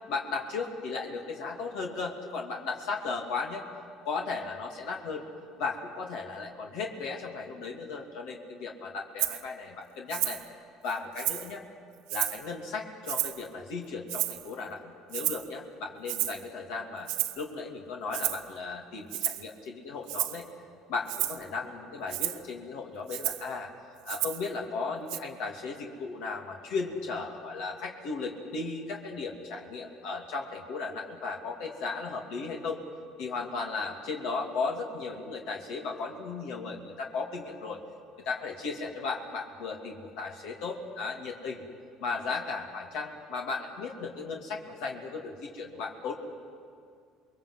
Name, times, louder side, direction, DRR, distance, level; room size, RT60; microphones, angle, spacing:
voice 1, 0.1-3.7 4.0-5.3 5.6-10.4 10.8-11.6 12.1-17.1 17.4-20.4 20.9-23.7 24.0-32.8 33.2-37.8 38.2-41.6 42.0-46.1, left 4 dB, 75° left, 0 dB, 2.8 m, -36 dB
Rattle (instrument), 9.2-9.4 10.1-10.5 10.9-11.5 12.1-12.5 13.1-13.5 14.1-14.5 15.1-15.5 16.1-16.4 17.1-17.4 18.1-18.5 19.1-19.5 20.1-20.4 21.1-21.4 22.1-22.4 23.1-23.5 24.1-24.5 25.1-25.2, right 16 dB, 80° right, 1.1 m, -32 dB
28.5 x 22.0 x 8.2 m, 2.3 s
supercardioid pair, 100°, 0 cm